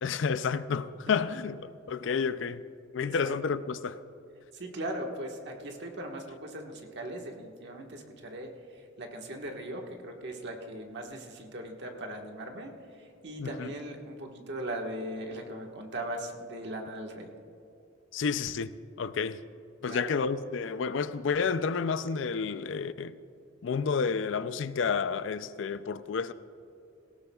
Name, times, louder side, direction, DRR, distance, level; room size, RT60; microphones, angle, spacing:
voice 1, 0.0-2.6 2.9-4.0 13.4-13.7 18.1-19.4 19.8-23.2 23.6-26.3, left 5 dB, 65° left, 0.4 m, -30 dB
voice 2, 3.0-3.3 4.5-17.3 19.8-20.1, right 1 dB, 60° right, 1.5 m, -39 dB
18.5 x 16.5 x 2.3 m
head